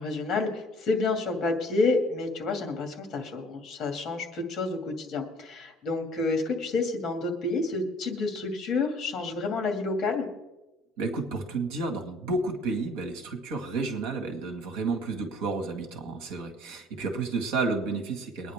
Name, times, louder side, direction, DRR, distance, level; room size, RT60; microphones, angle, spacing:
voice 1, 0.0-10.3, left 3 dB, 30° left, 4 dB, 2.4 m, -29 dB
voice 2, 11.0-18.5, right 3 dB, 70° right, 5 dB, 2.0 m, -31 dB
23.0 x 9.8 x 3.6 m, 1.0 s
cardioid pair, 175°, 0 cm